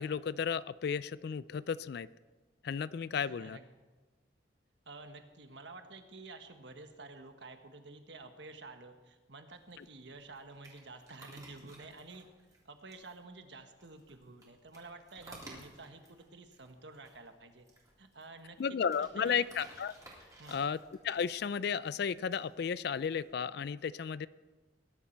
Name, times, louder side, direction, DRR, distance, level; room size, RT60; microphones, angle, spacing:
voice 1, 0.0-2.1 2.6-3.6 9.8-9.9 18.6-20.0 20.5-20.8 21.0-24.3, left 6 dB, 60° left, 17 dB, 0.4 m, -34 dB
voice 2, 3.2-3.7 4.8-12.3 12.6-17.7 18.0-19.4 20.4-20.7, right 3 dB, 70° right, 7 dB, 1.4 m, -51 dB
sound 1, 9.5-23.3, right 1 dB, 20° right, 3.6 m, -57 dB
20.5 x 11.5 x 4.5 m, 1.3 s
head